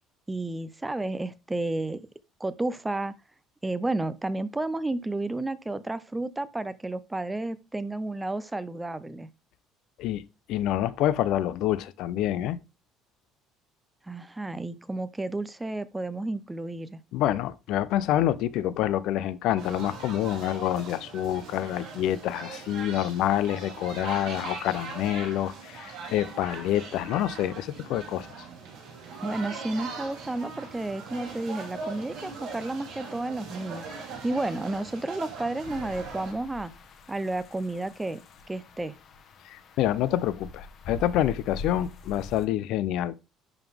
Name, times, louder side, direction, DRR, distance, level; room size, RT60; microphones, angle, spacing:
voice 1, 0.3-2.1 2.4-3.1 3.6-9.3 14.1-17.0 29.2-36.7 37.1-38.2 38.5-39.0, right 2 dB, 10° right, 0.3 m, -32 dB
voice 2, 10.5-12.6 17.1-28.3 39.4-43.2, left 12 dB, 60° left, 0.5 m, -27 dB
sound 1, 19.6-36.3, right 4 dB, 55° right, 3.2 m, -40 dB
sound 2, 35.6-42.5, left 3 dB, 40° left, 0.9 m, -44 dB
10.5 x 3.7 x 3.5 m
cardioid pair, 165°, 0 cm